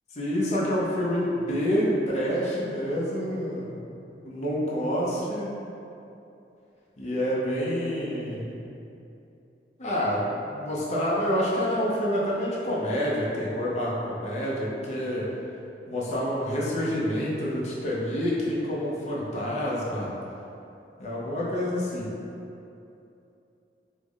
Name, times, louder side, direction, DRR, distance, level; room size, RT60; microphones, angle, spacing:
voice 1, 0.1-3.7 4.2-5.5 7.0-8.6 9.8-15.3 15.9-20.1 21.0-22.1, equal, 40° left, -5 dB, 0.6 m, -27 dB
3.3 x 2.0 x 3.5 m, 2.7 s
head